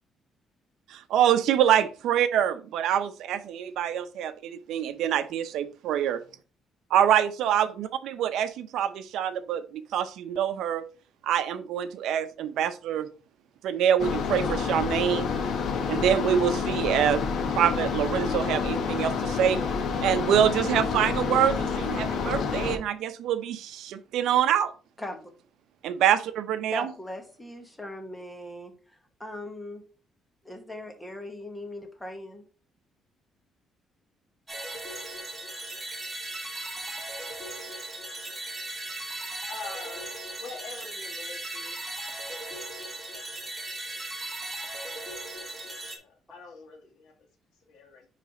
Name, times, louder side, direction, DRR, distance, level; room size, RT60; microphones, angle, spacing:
voice 1, 0.9-6.2 6.9-10.8 11.2-13.1 13.6-15.3 15.9-17.2 17.5-19.6 20.0-24.7 25.8-26.9, right 9 dB, 75° right, 0.6 m, -25 dB
sound 1, 14.0-22.8, left 5 dB, 55° left, 1.0 m, -28 dB
voice 2, 26.7-29.8 30.4-32.4, left 1 dB, 5° left, 1.2 m, -39 dB
sound 2, 34.5-46.0, right 2 dB, 10° right, 1.9 m, -37 dB
voice 3, 39.5-40.0 40.4-41.8 42.3-42.4 43.1-43.2 43.6-44.0 46.0-47.1 47.7-48.1, left 4 dB, 85° left, 1.9 m, -44 dB
9.8 x 3.3 x 4.0 m
cardioid pair, 160°, 0 cm